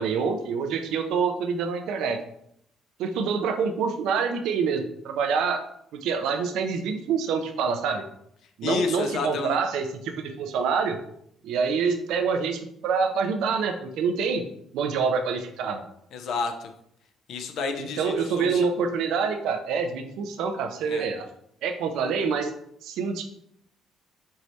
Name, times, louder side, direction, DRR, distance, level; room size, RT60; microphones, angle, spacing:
voice 1, 0.0-2.2 3.0-5.6 5.9-8.0 8.6-11.0 11.4-14.4 14.7-15.8 17.8-21.3 21.6-22.5 22.8-23.2, right 5 dB, 80° right, 6 dB, 0.5 m, -26 dB
voice 2, 8.6-9.6 16.1-16.7 17.3-18.6 20.9-21.0, left 4 dB, 70° left, 6 dB, 0.6 m, -30 dB
4.6 x 3.1 x 2.7 m, 0.72 s
cardioid pair, 100°, 0 cm